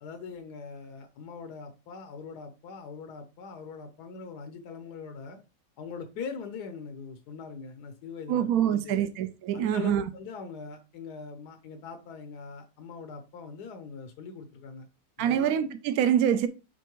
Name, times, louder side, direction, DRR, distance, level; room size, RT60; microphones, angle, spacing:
voice 1, 0.0-5.4 5.8-9.1 9.5-14.9 15.2-15.5, left 5 dB, 85° left, 1.4 m, -42 dB
voice 2, 8.3-10.0 15.2-16.5, right 10 dB, 75° right, 1.0 m, -25 dB
6.8 x 4.6 x 3.0 m
omnidirectional pair, 1.7 m